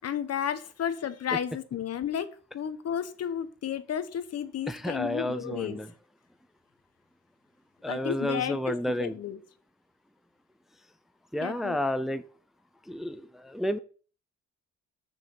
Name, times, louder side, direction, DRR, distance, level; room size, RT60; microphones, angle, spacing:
voice 1, 0.0-5.8 7.9-9.4 11.4-11.8, left 9 dB, 55° left, 1.0 m, -33 dB
voice 2, 4.7-5.9 7.8-9.1 11.3-12.2 12.9-13.8, left 1 dB, ahead, 0.6 m, -31 dB
6.7 x 6.2 x 5.6 m
cardioid pair, 90°, 30 cm